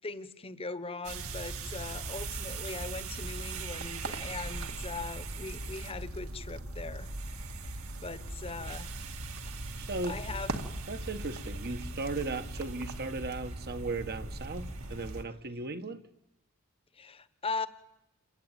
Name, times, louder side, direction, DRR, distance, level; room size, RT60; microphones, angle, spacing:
voice 1, 0.0-7.1 8.0-8.9 10.1-10.5 16.9-17.7, left 3 dB, 25° left, 1.2 m, -39 dB
sound 1, 1.0-15.2, right 2 dB, 65° right, 2.4 m, -39 dB
voice 2, 9.8-10.2 10.9-16.0, right 3 dB, 45° right, 1.4 m, -36 dB
28.5 x 22.5 x 9.0 m
head